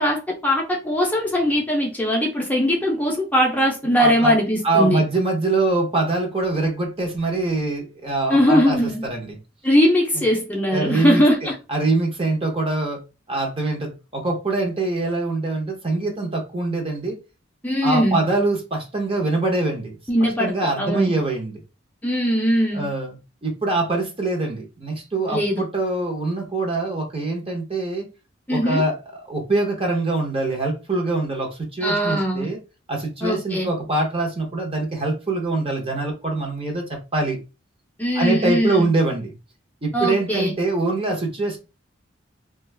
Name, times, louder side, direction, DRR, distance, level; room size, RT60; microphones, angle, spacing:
voice 1, 0.0-5.0 8.3-9.1 9.6-11.5 17.6-18.2 20.1-21.1 22.0-22.9 25.3-25.6 28.5-28.8 31.8-32.5 33.2-33.7 38.0-38.9 39.9-40.6, equal, 10° left, 0.6 m, -20 dB
voice 2, 4.0-4.3 4.6-9.4 10.7-13.0 13.3-17.2 17.8-20.0 20.4-21.6 22.7-28.1 28.5-28.9 29.3-32.6 32.9-37.4 38.1-39.3 39.8-41.6, right 2 dB, 30° right, 0.8 m, -24 dB
2.4 x 2.3 x 3.2 m
head